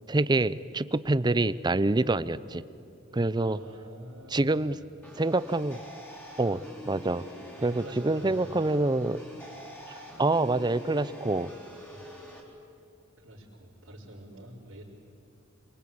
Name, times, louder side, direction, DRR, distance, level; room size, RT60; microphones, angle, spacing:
voice 1, 0.1-2.6 3.1-3.6 4.3-4.8 5.2-5.8 6.4-7.3 7.6-9.2 10.2-11.5, right 2 dB, 20° right, 16 dB, 0.5 m, -26 dB
voice 2, 3.1-4.9 7.6-8.6 11.9-12.0 13.2-14.8, right 1 dB, 85° right, -9 dB, 4.4 m, -47 dB
sound 1, 5.0-12.4, equal, 10° left, 4.3 m, -46 dB
27.0 x 23.0 x 8.7 m, 2.5 s
head